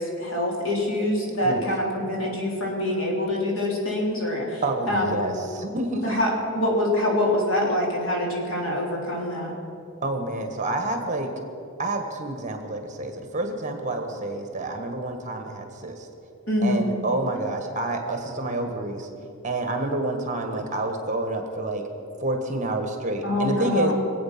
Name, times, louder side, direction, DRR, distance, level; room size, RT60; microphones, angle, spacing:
voice 1, 0.0-5.2 6.0-6.3 6.5-9.5 16.5-16.9 23.2-23.9, left 1 dB, 65° left, -2 dB, 3.4 m, -25 dB
voice 2, 4.6-6.2 10.0-11.3 11.8-16.1 16.6-19.1 19.4-21.9 22.2-23.9, right 2 dB, 35° right, 5 dB, 1.4 m, -28 dB
24.0 x 8.5 x 5.9 m, 2.8 s
head